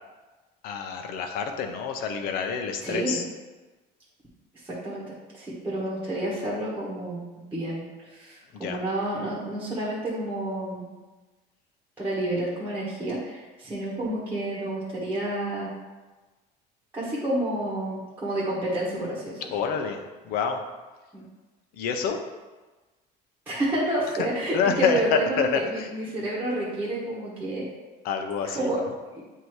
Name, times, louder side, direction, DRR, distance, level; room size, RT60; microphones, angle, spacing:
voice 1, 0.6-3.2 8.5-8.8 19.5-20.0 20.2-20.6 21.8-22.2 24.2-24.3 24.5-25.9 28.0-28.7, left 6 dB, 60° left, 5 dB, 0.7 m, -27 dB
voice 2, 2.8-3.2 4.6-5.0 5.3-7.8 8.1-10.8 12.0-15.7 16.9-19.6 21.1-21.2 23.5-27.7 28.4-28.8 29.1-29.2, right 1 dB, 10° right, -7 dB, 1.2 m, -29 dB
8.1 x 2.8 x 4.6 m, 1.2 s
cardioid pair, 170°, 18 cm